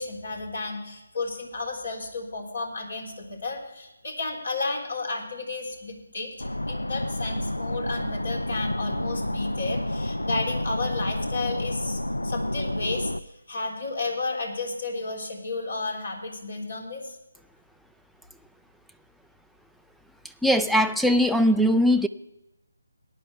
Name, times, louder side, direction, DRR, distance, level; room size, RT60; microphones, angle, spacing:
voice 1, 0.0-13.1 13.5-17.2, left 3 dB, 65° left, 2 dB, 3.5 m, -32 dB
sound 1, 6.4-13.2, left 1 dB, 90° left, 0.5 m, -29 dB
voice 2, 20.4-22.1, equal, ahead, 9 dB, 0.3 m, -20 dB
18.0 x 10.0 x 3.4 m, 0.95 s
figure-of-eight pair, 150°, 0 cm